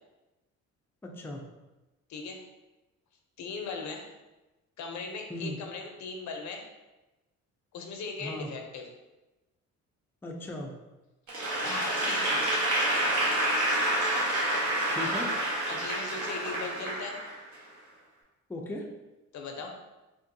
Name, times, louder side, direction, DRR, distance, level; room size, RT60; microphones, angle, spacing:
voice 1, 1.0-1.4 5.3-5.6 8.2-8.5 10.2-10.7 14.9-15.3 18.5-18.9, left 1 dB, 5° left, 0 dB, 0.4 m, -37 dB
voice 2, 2.1-2.4 3.4-4.0 4.8-6.7 7.7-8.9 11.6-12.6 15.7-17.2 19.3-19.8, left 4 dB, 70° left, 3 dB, 0.6 m, -38 dB
Applause / Crowd, 11.3-17.7, right 1 dB, 70° right, 1.2 m, -28 dB
3.6 x 2.6 x 2.6 m, 1.1 s
cardioid pair, 90°, 30 cm